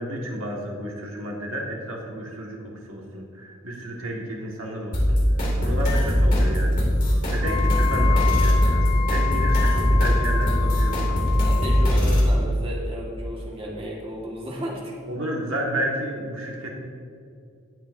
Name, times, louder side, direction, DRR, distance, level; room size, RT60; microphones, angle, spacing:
voice 1, 0.0-2.6 2.9-5.2 5.6-6.8 7.3-11.3 15.1-16.7, right 1 dB, 80° right, -1 dB, 1.7 m, -31 dB
sound 1, 4.9-12.3, equal, 45° left, 2.7 m, -20 dB
Wind instrument woodwind instrument, 7.4-11.9, left 10 dB, 25° left, 0.6 m, -30 dB
voice 2, 11.4-14.9, equal, 30° right, -3 dB, 1.7 m, -33 dB
18.0 x 7.6 x 2.7 m, 2.4 s
head